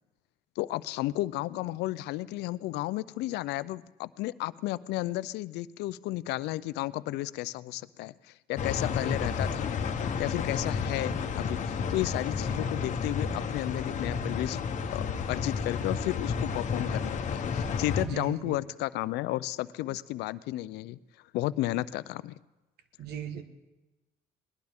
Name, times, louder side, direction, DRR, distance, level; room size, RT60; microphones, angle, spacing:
voice 1, 0.6-9.7 10.2-14.6 14.9-21.0 21.3-22.4, left 16 dB, 80° left, 17 dB, 0.4 m, -33 dB
sound 1, 8.6-18.1, left 6 dB, 45° left, 1.0 m, -31 dB
voice 2, 18.0-18.6 23.0-23.4, right 8 dB, 70° right, 9 dB, 1.3 m, -38 dB
20.0 x 11.5 x 3.6 m, 1.1 s
cardioid pair, 110°, 17 cm